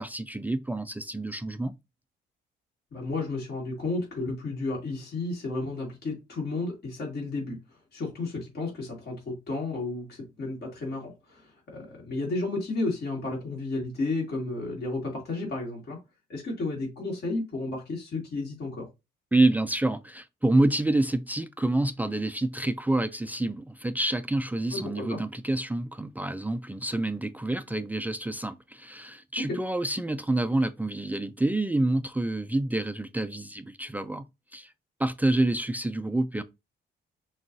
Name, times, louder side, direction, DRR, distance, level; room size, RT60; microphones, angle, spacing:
voice 1, 0.0-1.7 19.3-34.3 34.5-34.7 35.0-36.4, right 2 dB, 10° right, 0.3 m, -27 dB
voice 2, 2.9-16.0 16.3-18.9 24.7-25.2 29.5-29.6, left 2 dB, 55° left, 2.0 m, -32 dB
6.0 x 2.4 x 2.6 m
cardioid pair, 90°, 20 cm